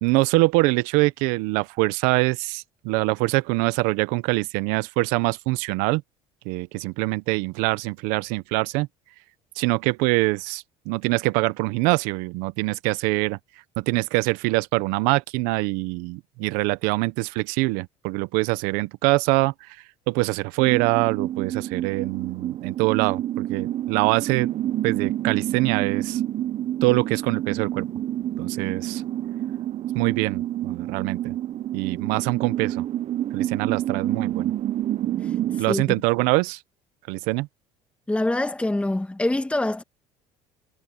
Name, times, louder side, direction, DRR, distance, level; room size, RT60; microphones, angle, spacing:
voice 1, 0.0-6.0 6.4-8.9 9.6-13.4 13.8-19.8 20.1-24.5 24.8-26.2 26.8-27.9 28.4-29.0 29.9-31.4 31.7-32.9 33.3-34.5 35.6-36.6 37.1-37.5, right 23 dB, 80° right, 0.9 m, -24 dB
sound 1, 20.6-35.6, right 12 dB, 50° right, 0.9 m, -28 dB
voice 2, 38.1-39.8, left 1 dB, 10° left, 1.7 m, -24 dB
supercardioid pair, 90°, 14 cm